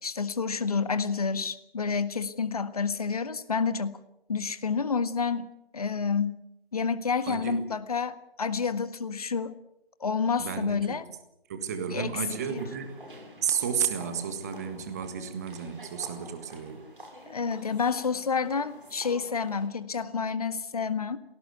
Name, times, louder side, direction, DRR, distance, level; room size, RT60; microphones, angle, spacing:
voice 1, 0.0-4.0 4.3-6.3 6.7-9.5 10.0-11.0 11.9-12.1 12.5-12.6 17.3-21.2, left 5 dB, 40° left, 12 dB, 1.6 m, -29 dB
voice 2, 7.3-7.6 10.4-11.0 11.5-13.1 13.4-16.8, right 7 dB, 15° right, 9 dB, 1.7 m, -32 dB
sound 1, 12.4-19.7, equal, 60° right, 7.5 m, -49 dB
27.5 x 18.0 x 8.1 m, 0.82 s
figure-of-eight pair, 160°, 30 cm